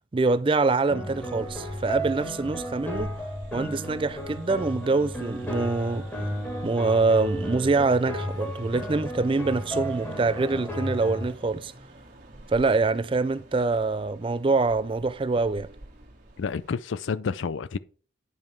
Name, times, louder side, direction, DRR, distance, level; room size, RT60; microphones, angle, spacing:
voice 1, 0.1-3.1 3.5-6.0 6.6-11.7 12.5-15.7, right 3 dB, 25° right, 0.4 m, -25 dB
sound 1, 0.9-11.3, equal, 10° left, 2.0 m, -33 dB
sound 2, 1.1-16.7, right 1 dB, 45° right, 1.9 m, -49 dB
voice 2, 16.4-17.8, left 5 dB, 85° left, 0.4 m, -29 dB
9.4 x 5.3 x 4.5 m
head